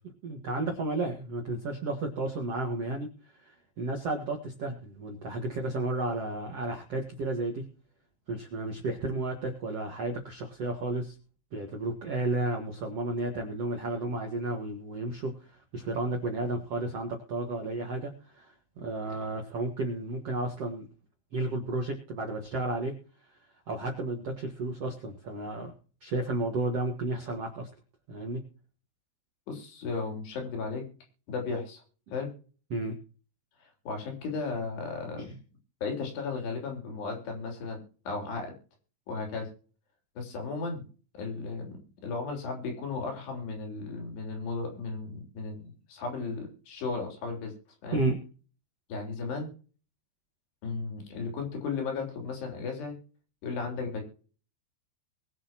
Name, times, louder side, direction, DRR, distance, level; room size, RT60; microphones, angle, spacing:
voice 1, 0.2-7.7 8.3-11.1 11.5-20.8 21.3-23.0 23.7-25.7 26.0-27.7 28.1-28.4 32.7-33.0 35.2-35.3 47.9-48.2, right 2 dB, 55° right, 2 dB, 1.8 m, -32 dB
voice 2, 29.5-30.8 31.3-31.8 32.1-32.3 33.6-35.3 35.8-38.6 39.1-39.5 40.2-40.9 41.1-47.5 47.8-48.0 48.9-49.5 50.6-53.0 53.4-54.0, left 4 dB, 65° left, 2 dB, 5.2 m, -35 dB
22.0 x 7.6 x 3.0 m, 0.38 s
omnidirectional pair, 5.4 m